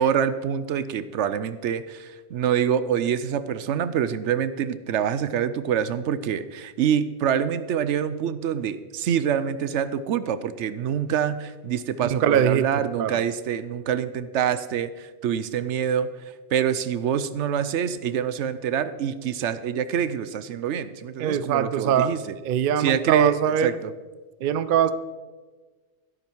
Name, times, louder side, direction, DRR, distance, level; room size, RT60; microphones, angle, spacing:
voice 1, 0.0-16.1 16.5-22.4 22.8-23.9, right 8 dB, 80° right, 14 dB, 0.9 m, -26 dB
voice 2, 12.0-12.6 12.9-13.2 21.2-22.2 22.4-23.7 24.4-24.9, right 9 dB, 60° right, 14 dB, 0.7 m, -22 dB
13.0 x 11.5 x 4.6 m, 1.3 s
omnidirectional pair, 1.2 m